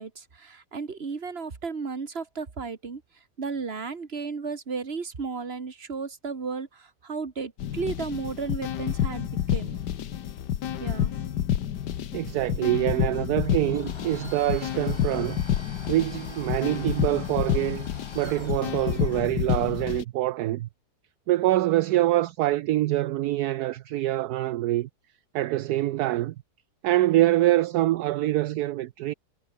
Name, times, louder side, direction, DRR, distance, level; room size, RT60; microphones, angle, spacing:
voice 1, 0.0-3.0 3.4-9.8 10.8-11.1, right 5 dB, 40° right, 2.1 m, -34 dB
sound 1, 7.6-20.0, left 10 dB, 80° left, 1.7 m, -29 dB
voice 2, 12.1-15.4 15.9-17.9 18.1-20.7 21.3-24.9 25.3-26.3 26.8-29.1, right 15 dB, 75° right, 1.1 m, -25 dB
Domestic sounds home sounds, 13.4-19.3, left 2 dB, 15° left, 2.1 m, -46 dB
omnidirectional pair, 1.8 m